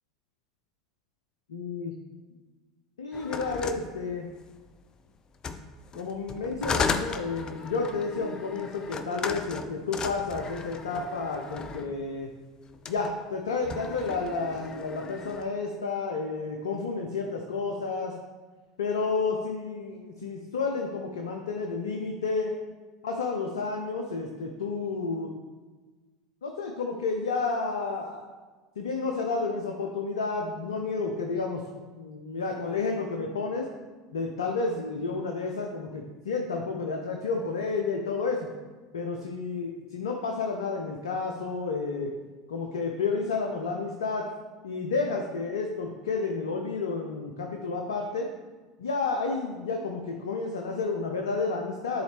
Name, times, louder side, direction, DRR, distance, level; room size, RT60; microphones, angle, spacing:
voice 1, 1.5-1.9 3.0-4.3 5.9-12.3 12.9-18.1 18.8-22.6 23.0-25.3 26.4-28.3 28.8-33.7 34.1-38.5 38.9-42.1 42.5-44.3 44.6-48.3 48.8-52.0, left 4 dB, 75° left, 3 dB, 0.6 m, -31 dB
sound 1, 3.1-4.7 5.3-12.0 12.7-13.1 13.5-15.5, left 5 dB, 30° left, 0.5 m, -35 dB
10.5 x 4.1 x 3.4 m, 1.3 s
figure-of-eight pair, 75°, 2 cm